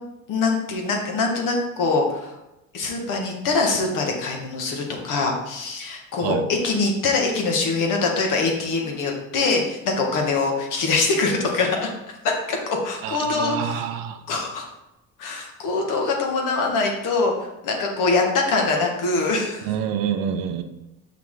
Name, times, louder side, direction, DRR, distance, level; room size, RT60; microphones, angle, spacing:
voice 1, 0.3-2.3 2.7-13.9 14.3-14.7 15.2-19.7, left 3 dB, 65° left, 1 dB, 1.7 m, -23 dB
voice 2, 13.0-14.2 19.6-20.6, right 8 dB, 80° right, 8 dB, 0.8 m, -27 dB
5.9 x 5.8 x 3.8 m, 0.93 s
cardioid pair, 105°, 34 cm